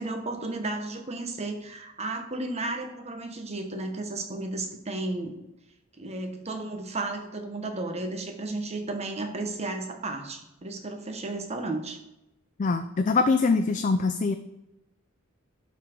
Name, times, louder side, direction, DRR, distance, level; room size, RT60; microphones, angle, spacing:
voice 1, 0.0-5.3 6.0-12.0, right 2 dB, 30° right, 5 dB, 1.1 m, -33 dB
voice 2, 12.6-14.4, left 4 dB, 35° left, 8 dB, 0.4 m, -23 dB
11.5 x 4.2 x 4.5 m, 0.93 s
head